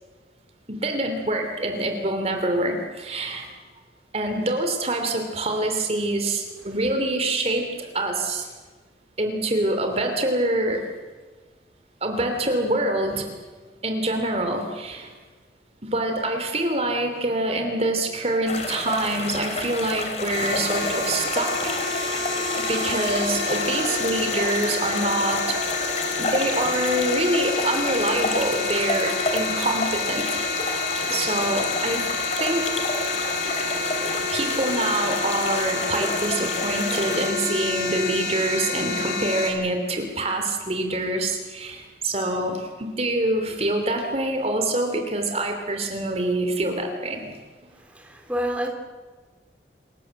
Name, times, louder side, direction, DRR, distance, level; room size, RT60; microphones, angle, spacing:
voice 1, 0.7-3.5 4.1-8.5 9.2-10.9 12.0-13.3 13.8-15.1 15.8-25.6 26.2-30.2 30.5-32.1 32.4-32.7 34.3-47.3, right 1 dB, 35° right, 4 dB, 3.1 m, -25 dB
sound 1, 18.5-37.3, left 2 dB, 40° left, 3.3 m, -30 dB
sound 2, 20.3-39.5, left 3 dB, 85° left, 7.3 m, -28 dB
voice 2, 47.7-48.7, equal, 10° right, 2 dB, 3.5 m, -29 dB
28.0 x 18.5 x 7.8 m, 1.4 s
head